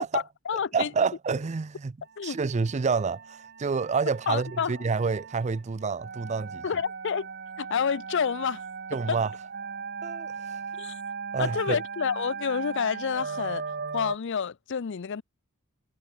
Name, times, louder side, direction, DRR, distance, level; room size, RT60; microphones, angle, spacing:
voice 1, 0.1-0.9 2.2-2.4 4.3-4.8 6.6-7.3 7.6-8.6 9.1-9.2 10.8-11.0 11.4-13.6 13.9-15.2, left 6 dB, 60° left, 0.5 m, -29 dB
voice 2, 0.7-2.0 2.2-6.6 8.9-9.3 10.0-10.6 11.3-11.8, right 5 dB, 30° right, 0.4 m, -28 dB
sound 1, 2.1-14.2, right 5 dB, 50° right, 1.1 m, -38 dB
head